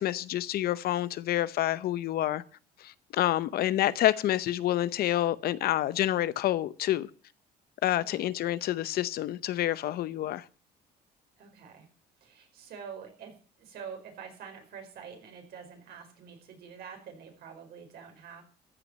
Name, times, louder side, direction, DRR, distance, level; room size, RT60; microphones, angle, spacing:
voice 1, 0.0-2.4 2.8-7.1 7.8-10.4, left 13 dB, 65° left, 0.7 m, -28 dB
voice 2, 11.4-11.9 12.2-13.3 13.6-18.4, right 7 dB, 70° right, 4.8 m, -46 dB
14.5 x 6.0 x 9.1 m
cardioid pair, 110°, 17 cm